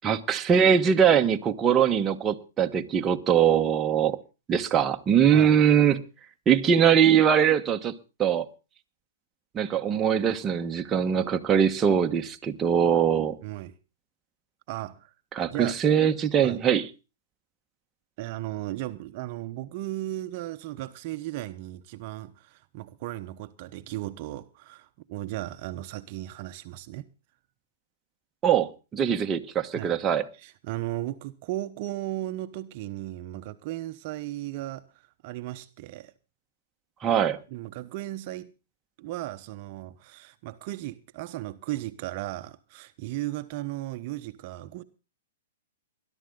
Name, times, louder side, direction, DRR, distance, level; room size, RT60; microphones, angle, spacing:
voice 1, 0.0-4.2 4.5-6.0 6.5-8.4 9.5-13.4 15.3-16.8 28.4-30.2 37.0-37.4, right 8 dB, 20° right, 1.2 m, -22 dB
voice 2, 13.4-13.7 14.7-15.1 15.5-15.8 16.4-16.6 18.2-27.0 29.7-30.0 30.4-34.9 35.2-36.1 37.5-38.5 39.0-44.8, right 15 dB, 45° right, 0.9 m, -36 dB
20.5 x 12.0 x 3.8 m
hypercardioid pair, 130°, 0 cm